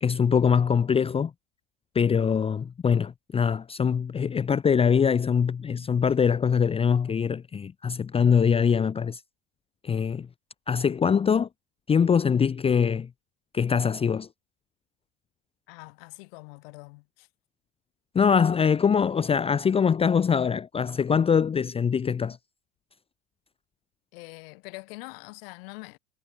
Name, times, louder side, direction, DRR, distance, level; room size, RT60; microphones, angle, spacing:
voice 1, 0.0-1.3 1.9-9.2 9.8-10.3 10.7-11.5 11.9-13.1 13.5-14.3 18.1-22.4, left 6 dB, 20° left, 0.8 m, -23 dB
voice 2, 15.7-17.3 24.1-26.0, left 27 dB, 65° left, 4.2 m, -44 dB
hypercardioid pair, 100°, 32 cm